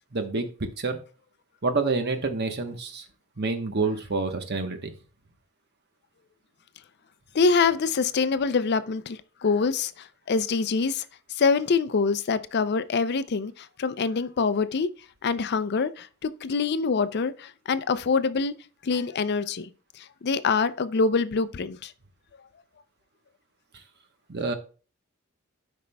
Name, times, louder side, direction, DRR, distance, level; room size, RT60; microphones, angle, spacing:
voice 1, 0.1-0.5 0.8-1.0 1.6-3.0 3.4-4.9 24.3-24.5, right 3 dB, 50° right, 1.0 m, -27 dB
voice 2, 7.3-11.0 11.4-14.9 15.2-18.5 18.8-19.7 20.2-21.9, left 4 dB, 50° left, 0.4 m, -25 dB
13.0 x 5.2 x 2.2 m
head